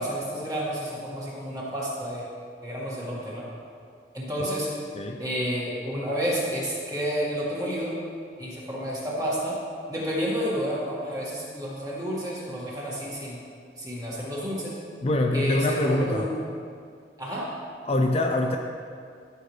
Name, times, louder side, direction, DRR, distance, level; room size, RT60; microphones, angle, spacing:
voice 1, 0.0-2.2 2.6-3.5 4.1-4.7 5.2-7.9 8.4-9.6 9.9-13.4 13.8-14.8 15.3-16.3 17.2-17.5, equal, 20° right, -6 dB, 2.0 m, -30 dB
voice 2, 15.0-16.3 17.9-18.6, left 2 dB, 35° left, 2 dB, 0.5 m, -24 dB
12.5 x 6.8 x 3.3 m, 2.2 s
head